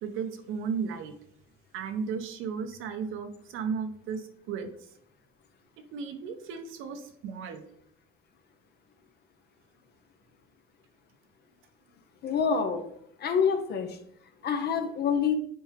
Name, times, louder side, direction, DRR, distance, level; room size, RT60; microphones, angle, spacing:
voice 1, 0.0-1.1 1.7-4.7 5.9-7.6, right 6 dB, 75° right, 7 dB, 1.0 m, -34 dB
voice 2, 12.2-12.8 13.2-14.0 14.4-15.4, left 6 dB, 50° left, 7 dB, 1.0 m, -26 dB
7.9 x 4.4 x 3.4 m, 0.69 s
cardioid pair, 120°, 21 cm